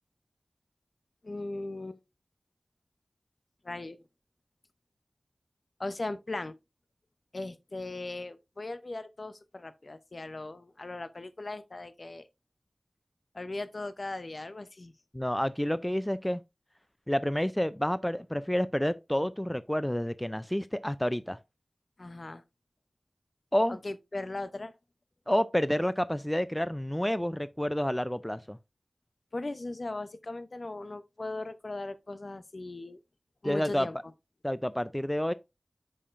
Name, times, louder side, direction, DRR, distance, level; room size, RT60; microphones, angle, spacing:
voice 1, 1.2-2.0 3.6-4.0 5.8-6.6 7.3-12.3 13.3-14.9 22.0-22.4 23.7-24.7 29.3-33.0 33.4-34.0, left 2 dB, 60° left, 0.7 m, -38 dB
voice 2, 15.1-16.4 17.1-21.4 23.5-23.8 25.3-28.6 33.4-33.9 34.4-35.3, equal, 10° left, 0.3 m, -29 dB
8.4 x 5.6 x 2.5 m
wide cardioid pair, 55°, 0 cm